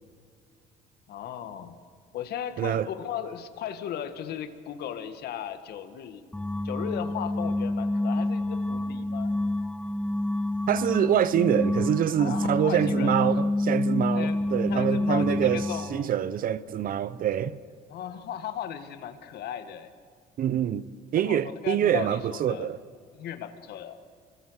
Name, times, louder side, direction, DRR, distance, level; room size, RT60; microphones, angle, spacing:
voice 1, 1.1-1.8 2.1-6.2 6.6-9.3 12.2-13.4 14.1-16.1 17.9-19.9 21.1-22.7 23.1-24.0, left 9 dB, 70° left, 1.9 m, -36 dB
voice 2, 2.6-2.9 10.7-17.6 20.4-20.9 21.1-22.8, right 10 dB, 55° right, 0.8 m, -25 dB
sound 1, 6.3-16.0, left 1 dB, 5° left, 0.6 m, -28 dB
27.5 x 24.0 x 6.5 m
cardioid pair, 110°, 17 cm